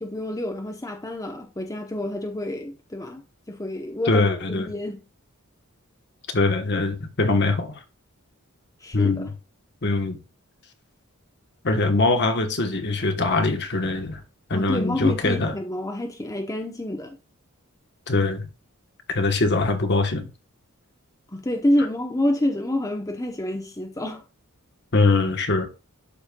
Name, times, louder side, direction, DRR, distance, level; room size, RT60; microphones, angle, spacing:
voice 1, 0.0-3.2 3.5-5.0 8.8-9.2 14.5-17.2 21.3-24.2, left 1 dB, 15° left, 0.9 m, -28 dB
voice 2, 4.1-4.7 6.3-7.7 8.9-9.3 9.8-10.2 11.6-14.2 14.5-15.5 18.1-18.5 19.1-20.3 24.9-25.7, left 3 dB, 50° left, 1.2 m, -22 dB
12.0 x 4.2 x 2.3 m
head